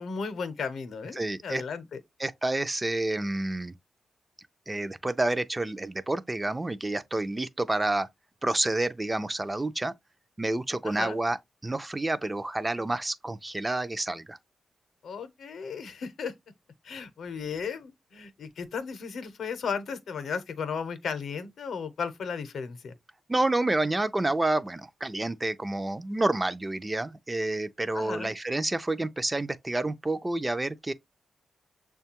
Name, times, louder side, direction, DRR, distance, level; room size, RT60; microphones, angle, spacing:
voice 1, 0.0-2.0 10.8-11.2 15.0-16.3 16.8-22.9 27.9-28.3, left 6 dB, 80° left, 0.7 m, -35 dB
voice 2, 1.2-1.6 2.2-3.7 4.7-8.1 8.4-9.9 10.4-11.4 11.6-14.4 23.3-30.9, right 2 dB, 20° right, 0.3 m, -29 dB
6.5 x 2.2 x 2.8 m
cardioid pair, 80°, 0 cm